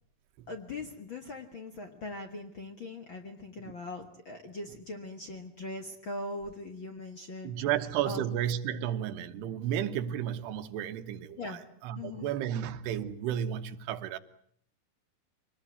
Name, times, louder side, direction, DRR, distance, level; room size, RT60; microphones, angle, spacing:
voice 1, 0.5-7.5 8.0-8.2 11.4-11.6 12.0-12.3, left 2 dB, 50° left, 1.5 m, -40 dB
voice 2, 7.4-14.2, right 10 dB, 85° right, 3.3 m, -33 dB
25.0 x 19.0 x 9.5 m
omnidirectional pair, 4.6 m